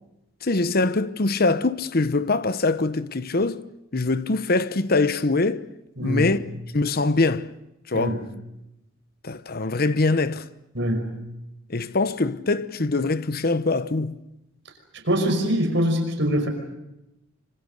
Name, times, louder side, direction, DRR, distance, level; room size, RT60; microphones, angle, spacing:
voice 1, 0.4-3.6 3.9-5.6 6.0-6.4 6.7-7.5 7.9-8.2 9.2-10.4 11.7-14.2, left 3 dB, 50° left, 1.0 m, -23 dB
voice 2, 6.0-6.3 7.9-8.2 10.7-11.2 15.0-16.5, equal, 65° right, 5.4 m, -23 dB
26.5 x 26.0 x 6.7 m
head